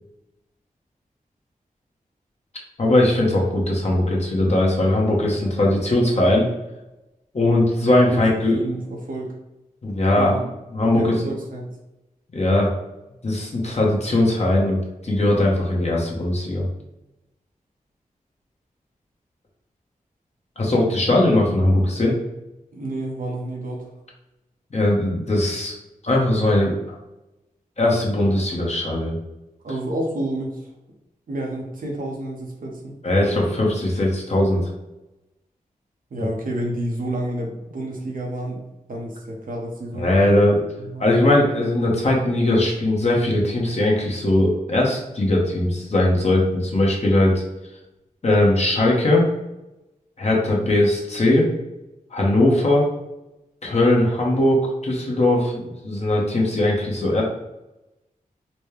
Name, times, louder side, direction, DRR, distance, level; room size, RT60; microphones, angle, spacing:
voice 1, 2.8-6.5 7.3-8.6 9.8-10.3 10.7-11.2 12.3-12.7 13.2-14.8 15.0-16.6 20.6-22.1 24.7-25.7 26.0-26.7 27.8-29.1 33.0-34.7 39.9-40.6 41.0-47.4 48.2-49.3 50.2-51.5 52.1-52.9 53.6-57.2, left 1 dB, 50° left, -2 dB, 1.1 m, -19 dB
voice 2, 8.5-9.3 10.1-10.5 11.0-11.7 22.7-23.9 29.6-30.6 31.3-32.9 36.1-38.6 38.9-40.1 40.8-41.1, right 1 dB, 70° right, 0 dB, 1.0 m, -29 dB
4.1 x 2.2 x 3.3 m, 0.97 s
cardioid pair, 55°, 15 cm